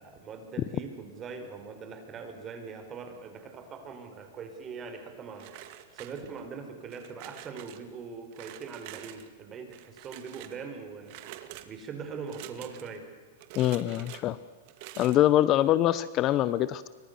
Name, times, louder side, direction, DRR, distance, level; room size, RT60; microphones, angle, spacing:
voice 1, 0.0-5.5 5.9-11.2 11.6-13.1, right 5 dB, 25° right, 6 dB, 5.3 m, -41 dB
sound 1, 5.4-6.5 6.9-7.8 8.3-9.3 9.7-10.6 11.0-11.7 12.2-13.0 13.4-14.2 14.6-15.2, right 14 dB, 50° right, 2.5 m, -46 dB
voice 2, 13.6-14.4 15.0-16.9, left 13 dB, 35° left, 17 dB, 0.8 m, -24 dB
29.5 x 24.5 x 7.1 m, 1.5 s
supercardioid pair, 145°, 0 cm